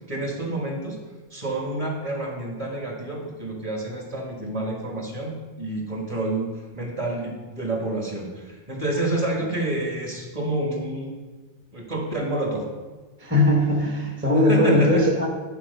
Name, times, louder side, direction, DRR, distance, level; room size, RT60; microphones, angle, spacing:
voice 1, 0.1-1.0 1.3-11.1 11.7-12.7 14.3-15.3, right 2 dB, 30° right, -1 dB, 1.6 m, -28 dB
voice 2, 13.2-15.3, left 1 dB, 10° right, -2 dB, 0.9 m, -19 dB
9.5 x 4.4 x 5.5 m, 1.3 s
omnidirectional pair, 1.2 m